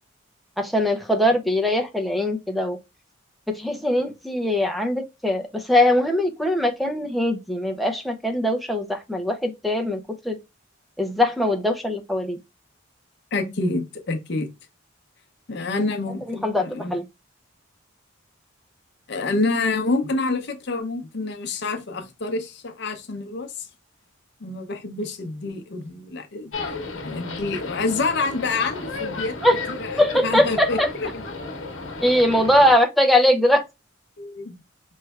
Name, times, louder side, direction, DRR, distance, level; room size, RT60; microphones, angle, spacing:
voice 1, 0.6-2.8 3.5-10.0 10.2-10.4 11.0-12.4 16.4-17.0 29.4-29.6 30.0-30.9 32.0-33.6, left 1 dB, ahead, 0.5 m, -21 dB
voice 2, 13.3-14.5 15.5-17.0 19.1-23.7 24.4-26.5 27.0-29.4 29.7-31.2 34.2-34.6, left 3 dB, 55° left, 0.7 m, -27 dB
sound 1, 26.5-32.7, left 3 dB, 85° left, 1.0 m, -33 dB
4.3 x 3.2 x 2.3 m
head